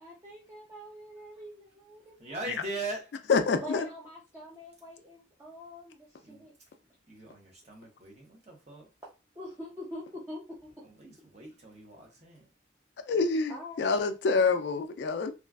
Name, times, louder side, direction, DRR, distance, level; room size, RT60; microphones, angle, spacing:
voice 1, 0.0-2.2 3.6-6.5 9.0-9.1 9.4-10.7 13.5-13.9, left 1 dB, 15° right, 0.5 m, -44 dB
voice 2, 2.2-3.2 6.2-6.5 7.1-8.9 10.8-12.5, right 2 dB, 35° right, 0.9 m, -41 dB
voice 3, 3.3-3.9 13.0-15.3, left 4 dB, 65° left, 0.3 m, -26 dB
3.0 x 2.4 x 2.3 m
head